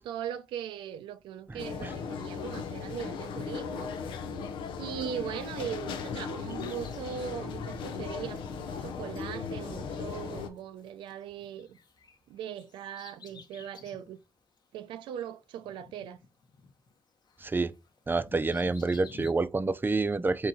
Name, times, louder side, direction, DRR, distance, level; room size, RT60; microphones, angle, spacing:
voice 1, 0.0-3.9 4.8-11.8 12.3-14.2 14.7-16.2, right 9 dB, 90° right, 0.4 m, -39 dB
voice 2, 1.5-1.9 17.4-17.7 18.1-20.5, right 3 dB, 25° right, 0.5 m, -28 dB
sound 1, 1.6-10.5, left 6 dB, 85° left, 0.6 m, -37 dB
Bird vocalization bird call bird song, 6.5-11.1 11.4-14.1 14.6-14.7 15.6-17.0 17.3-19.3, left 4 dB, 60° left, 1.1 m, -51 dB
3.7 x 3.0 x 4.0 m
supercardioid pair, 50°, 8 cm